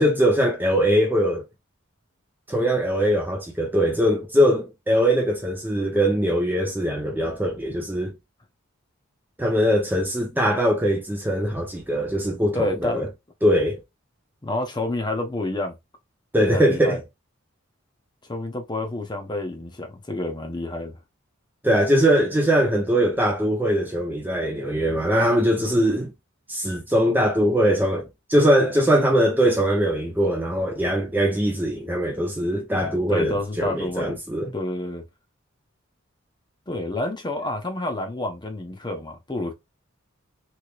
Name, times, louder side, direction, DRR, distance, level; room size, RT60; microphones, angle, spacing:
voice 1, 0.0-1.4 2.5-8.1 9.4-13.1 13.4-13.8 16.3-17.0 21.6-26.1 26.5-34.5, equal, 10° right, 0.5 m, -21 dB
voice 2, 12.5-13.1 14.4-15.7 16.4-17.0 18.3-21.0 32.9-34.2 34.5-35.0 36.7-39.5, left 2 dB, 20° left, 0.8 m, -29 dB
3.4 x 3.3 x 2.3 m
head